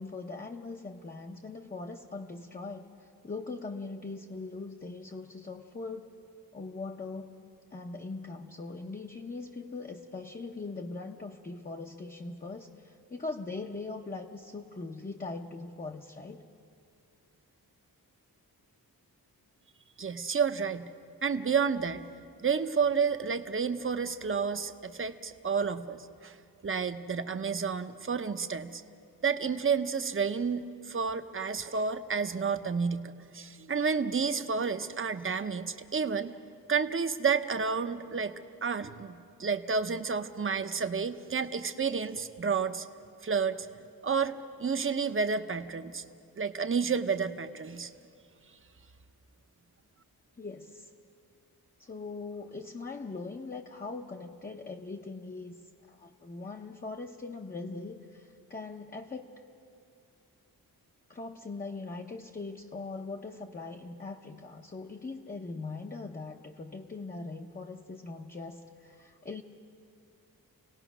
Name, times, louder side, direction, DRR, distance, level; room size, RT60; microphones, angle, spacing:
voice 1, 0.0-6.1 6.5-16.5 50.4-50.9 51.8-55.6 55.9-59.3 61.1-69.4, left 3 dB, 25° left, 2 dB, 0.8 m, -41 dB
voice 2, 20.0-20.9 21.2-22.0 22.4-26.4 26.6-28.8 29.2-36.3 36.7-38.3 38.6-39.1 39.4-42.9 43.2-43.7 44.0-44.3 44.6-46.0 46.4-47.9, right 5 dB, 35° right, 9 dB, 0.8 m, -30 dB
29.0 x 18.0 x 6.1 m, 2.5 s
wide cardioid pair, 140°, 37 cm